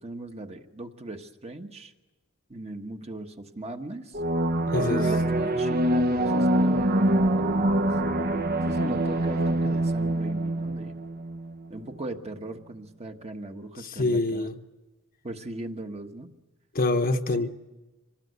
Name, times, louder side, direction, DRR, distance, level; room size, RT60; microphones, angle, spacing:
voice 1, 0.0-1.9 2.5-4.2 4.8-7.9 8.6-11.0 11.7-14.5 15.2-16.3 17.1-17.2, right 2 dB, 30° right, 1.3 m, -38 dB
sound 1, 4.1-11.5, right 1 dB, 45° right, 1.0 m, -25 dB
voice 2, 4.7-5.0 13.8-14.5 16.7-17.5, left 2 dB, 40° left, 1.1 m, -25 dB
25.5 x 19.5 x 8.2 m
head